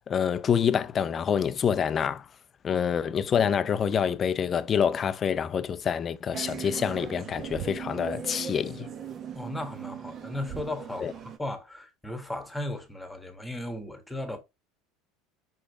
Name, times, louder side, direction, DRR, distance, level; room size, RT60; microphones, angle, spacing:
voice 1, 0.1-2.3 2.6-8.9 11.0-11.1, left 7 dB, 25° left, 0.5 m, -26 dB
sound 1, 6.3-11.4, right 8 dB, 35° right, 0.9 m, -39 dB
voice 2, 9.3-14.4, left 1 dB, 5° left, 1.5 m, -36 dB
5.7 x 5.0 x 3.6 m
cardioid pair, 150°, 0 cm